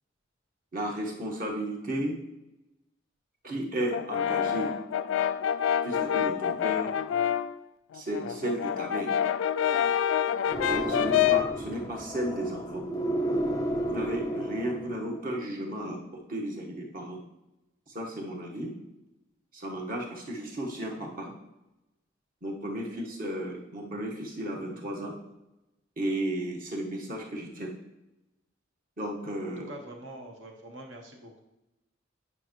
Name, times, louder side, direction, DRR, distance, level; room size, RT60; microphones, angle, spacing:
voice 1, 0.7-2.1 3.4-4.7 5.8-6.9 7.9-9.2 10.7-12.9 13.9-17.2 17.9-18.7 19.5-21.3 22.4-25.1 26.0-27.7 29.0-29.7, right 1 dB, 45° right, 0 dB, 1.3 m, -34 dB
Brass instrument, 3.9-7.6 7.9-11.6, left 9 dB, 80° left, 0.3 m, -27 dB
sound 1, 10.5-15.1, right 1 dB, 20° left, 0.5 m, -32 dB
voice 2, 10.9-11.3 22.7-23.1 29.6-31.4, right 1 dB, 70° right, 2 dB, 1.2 m, -46 dB
9.9 x 5.5 x 3.1 m, 0.95 s
head